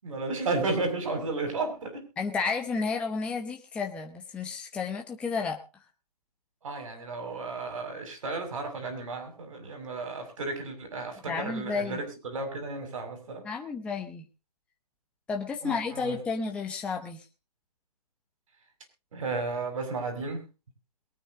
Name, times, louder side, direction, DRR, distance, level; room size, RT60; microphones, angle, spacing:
voice 1, 0.0-2.0 6.6-12.0 12.3-13.4 15.6-16.2 19.1-20.4, right 3 dB, 55° right, 5 dB, 6.2 m, -33 dB
voice 2, 2.2-5.6 11.3-12.1 13.4-14.2 15.3-17.2, left 4 dB, 5° left, 2 dB, 0.9 m, -32 dB
22.5 x 9.0 x 3.9 m, 0.30 s
hypercardioid pair, 155°, 20 cm